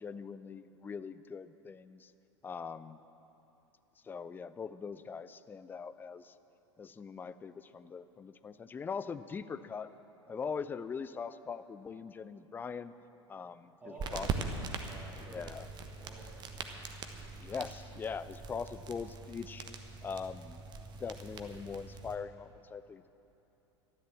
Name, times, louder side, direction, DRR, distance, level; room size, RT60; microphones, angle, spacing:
voice 1, 0.0-2.1 2.4-3.0 4.0-6.3 6.8-9.9 10.3-12.9 13.3-13.7 14.1-14.3 15.3-15.7 17.4-19.7 20.0-20.6 21.0-23.1, left 5 dB, 15° left, 14 dB, 0.4 m, -41 dB
voice 2, 13.8-15.5 16.0-17.1 18.6-18.7, right 1 dB, 5° right, -5 dB, 3.5 m, -52 dB
sound 1, 14.0-22.1, right 5 dB, 30° right, 1.1 m, -42 dB
13.0 x 11.0 x 7.6 m, 3.0 s
figure-of-eight pair, 85°, 15 cm